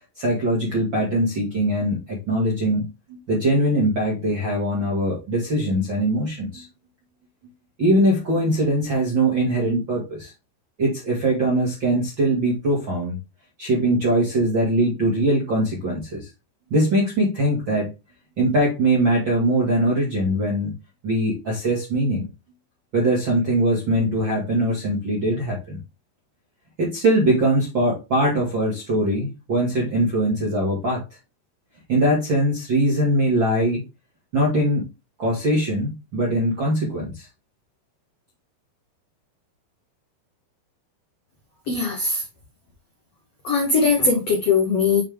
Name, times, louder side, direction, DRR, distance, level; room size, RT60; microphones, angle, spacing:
voice 1, 0.2-6.7 7.8-10.3 10.8-13.2 13.6-16.3 16.7-17.9 18.4-20.7 21.0-22.3 22.9-25.8 26.8-31.0 31.9-33.8 34.3-34.9 35.2-37.3, right 1 dB, 50° right, 1.4 m, -21 dB
voice 2, 41.7-42.2 43.4-45.0, left 4 dB, 85° left, 1.4 m, -20 dB
8.7 x 3.6 x 3.5 m
omnidirectional pair, 5.3 m